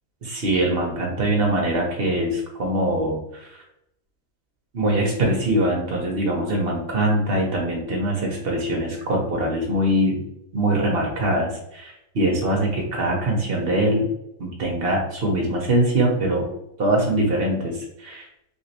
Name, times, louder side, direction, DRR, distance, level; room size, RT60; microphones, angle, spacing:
voice 1, 0.2-3.6 4.7-10.2 10.5-14.1 14.4-16.5 16.8-18.3, right 1 dB, 50° right, 0 dB, 0.7 m, -23 dB
3.2 x 3.0 x 2.7 m, 0.83 s
omnidirectional pair, 1.6 m